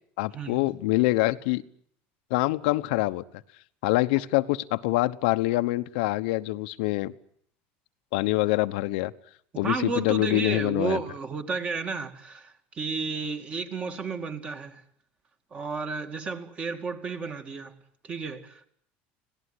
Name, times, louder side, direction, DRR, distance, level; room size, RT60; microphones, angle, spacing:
voice 1, 0.2-1.6 2.3-3.2 3.8-7.1 8.1-9.1 9.6-11.0, left 19 dB, 80° left, 1.0 m, -25 dB
voice 2, 9.6-14.8 15.5-17.7 18.0-18.7, right 4 dB, 25° right, 2.3 m, -32 dB
25.5 x 18.0 x 9.8 m
cardioid pair, 155°, 5 cm